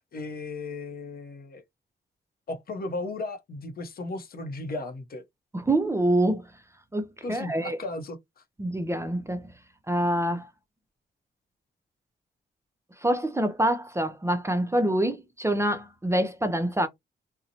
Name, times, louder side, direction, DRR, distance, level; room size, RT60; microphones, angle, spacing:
voice 1, 0.1-1.6 2.5-5.2 7.2-8.4, left 2 dB, 50° left, 0.6 m, -35 dB
voice 2, 5.5-6.4 6.9-7.8 8.6-9.5 9.9-10.5 13.0-16.9, right 1 dB, 15° right, 0.4 m, -26 dB
2.6 x 2.0 x 2.7 m
cardioid pair, 80°, 19 cm